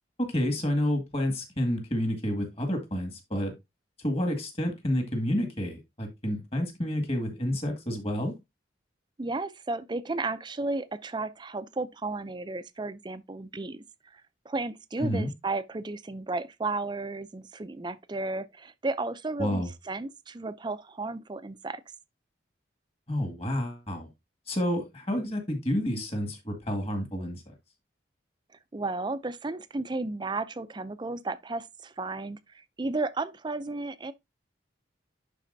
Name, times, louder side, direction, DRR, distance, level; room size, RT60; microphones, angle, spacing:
voice 1, 0.2-3.5 4.0-8.3 15.0-15.3 19.4-19.7 23.1-24.1 24.5-27.4, equal, 30° left, 2.0 m, -29 dB
voice 2, 9.2-13.8 14.1-21.8 28.7-34.1, right 3 dB, 25° right, 0.5 m, -33 dB
11.0 x 4.2 x 2.7 m
head